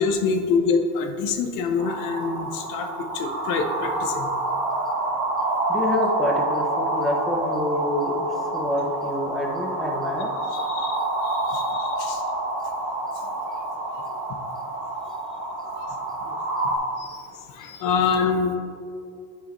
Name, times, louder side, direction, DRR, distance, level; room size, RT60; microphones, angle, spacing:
voice 1, 0.0-4.3 10.5-11.0 11.2-12.2 16.3-16.4 17.0-17.2 17.5-18.6, left 5 dB, 55° left, 5 dB, 0.9 m, -26 dB
sound 1, 1.8-16.8, right 2 dB, 40° right, 1.4 m, -27 dB
voice 2, 5.7-8.3 8.5-10.3, left 1 dB, ahead, -1 dB, 0.6 m, -27 dB
9.8 x 4.9 x 3.0 m, 2.3 s
supercardioid pair, 130°, 37 cm